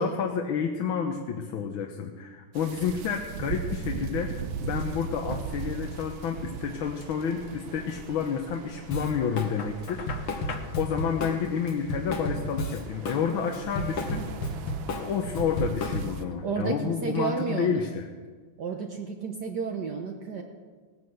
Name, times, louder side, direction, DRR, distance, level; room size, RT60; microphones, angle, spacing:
voice 1, 0.0-14.4 14.9-18.1, left 7 dB, 75° left, 3 dB, 1.7 m, -30 dB
sound 1, 2.5-16.2, right 6 dB, 70° right, 1.7 m, -39 dB
Drum kit, 8.9-9.5 9.8-13.2 13.5-16.3, left 1 dB, 90° left, 2.5 m, -32 dB
Knock, 9.6-10.7, left 5 dB, 45° left, 1.3 m, -39 dB
voice 2, 16.4-17.9 18.6-20.4, right 5 dB, 55° right, 2 dB, 1.5 m, -31 dB
17.5 x 9.9 x 7.9 m, 1.5 s
omnidirectional pair, 2.3 m